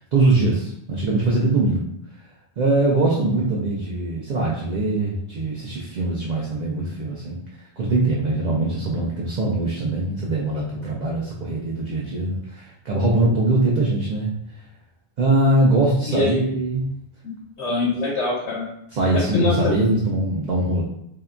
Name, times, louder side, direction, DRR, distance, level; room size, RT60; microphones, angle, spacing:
voice 1, 0.1-1.9 2.6-7.4 7.8-14.3 15.2-16.9 18.9-20.8, right 2 dB, 55° right, -4 dB, 0.5 m, -22 dB
voice 2, 16.0-16.4 17.6-18.7 19.1-19.7, left 2 dB, 85° left, -6 dB, 1.1 m, -23 dB
2.8 x 2.2 x 2.4 m, 0.76 s
omnidirectional pair, 1.1 m